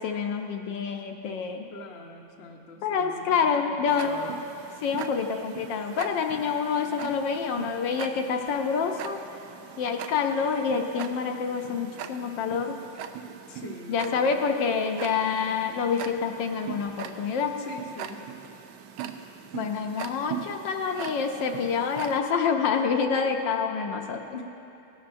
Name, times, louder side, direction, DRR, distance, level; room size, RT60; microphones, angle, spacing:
voice 1, 0.0-1.6 2.8-4.2 4.8-9.2 9.8-12.8 13.9-17.5 19.5-24.2, left 6 dB, 70° left, 4 dB, 1.3 m, -27 dB
voice 2, 1.7-4.4 13.5-14.4 17.6-18.3 24.3-24.4, left 3 dB, 55° left, 1 dB, 0.7 m, -43 dB
Tick-tock, 3.9-22.2, right 9 dB, 85° right, 1.4 m, -41 dB
17.5 x 11.5 x 2.6 m, 3.0 s
omnidirectional pair, 2.2 m